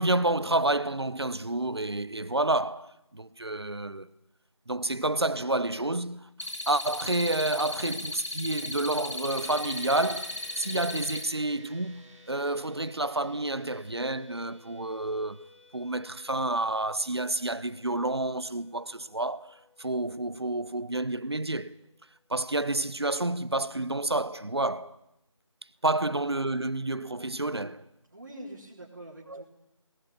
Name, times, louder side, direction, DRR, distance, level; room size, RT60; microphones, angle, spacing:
voice 1, 0.0-4.1 4.7-6.2 6.7-15.5 15.7-21.7 22.3-25.0 25.8-27.8 29.3-29.4, right 2 dB, 50° right, 1.1 m, -29 dB
sound 1, 6.4-11.2, left 2 dB, 65° left, 2.7 m, -36 dB
sound 2, 9.3-22.9, equal, ahead, 2.9 m, -55 dB
voice 2, 28.1-29.4, right 1 dB, 35° right, 4.0 m, -44 dB
20.5 x 19.5 x 9.4 m
figure-of-eight pair, 170°, 17 cm